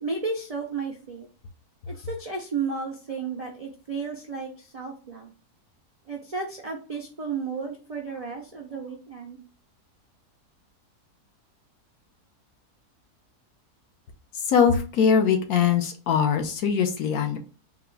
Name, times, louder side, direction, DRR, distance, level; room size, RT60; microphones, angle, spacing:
voice 1, 0.0-1.3 1.9-5.3 6.1-9.4, right 4 dB, 55° right, 1 dB, 0.4 m, -33 dB
voice 2, 14.5-17.4, left 7 dB, 70° left, 5 dB, 1.1 m, -22 dB
3.9 x 2.2 x 4.5 m, 0.36 s
omnidirectional pair, 1.7 m